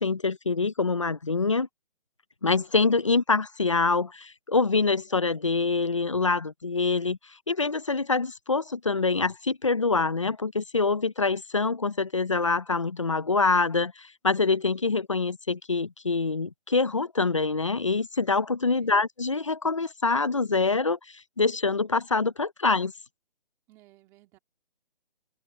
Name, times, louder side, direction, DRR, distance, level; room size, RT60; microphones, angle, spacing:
voice 1, 0.0-1.7 2.4-7.2 7.5-22.9, left 4 dB, 35° left, 0.5 m, -25 dB
voice 2, 18.7-19.0 23.7-24.4, right 17 dB, 10° right, 2.1 m, -58 dB
open air
hypercardioid pair, 170°, 30 cm